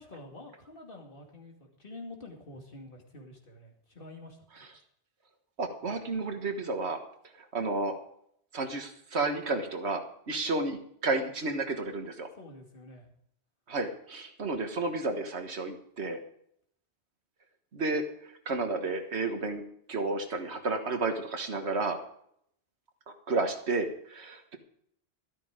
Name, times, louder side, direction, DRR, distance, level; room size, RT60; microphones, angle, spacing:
voice 1, 0.0-4.5 12.3-13.1, left 2 dB, 55° left, 1 dB, 2.5 m, -48 dB
voice 2, 5.6-7.0 7.5-7.9 8.5-12.3 13.7-16.2 17.7-19.6 19.9-22.0 23.1-24.6, right 3 dB, 80° right, 6 dB, 1.7 m, -32 dB
12.5 x 12.5 x 5.0 m, 0.70 s
omnidirectional pair, 1.1 m